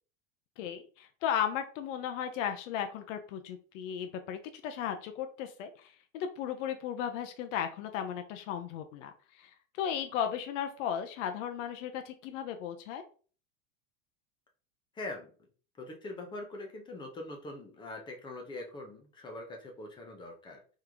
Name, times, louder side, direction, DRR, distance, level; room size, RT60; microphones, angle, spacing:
voice 1, 0.6-13.0, left 9 dB, 65° left, 7 dB, 0.7 m, -36 dB
voice 2, 14.9-15.3 15.8-20.6, left 2 dB, 10° left, 2 dB, 0.5 m, -43 dB
3.8 x 3.1 x 3.3 m, 0.40 s
supercardioid pair, 155°, 41 cm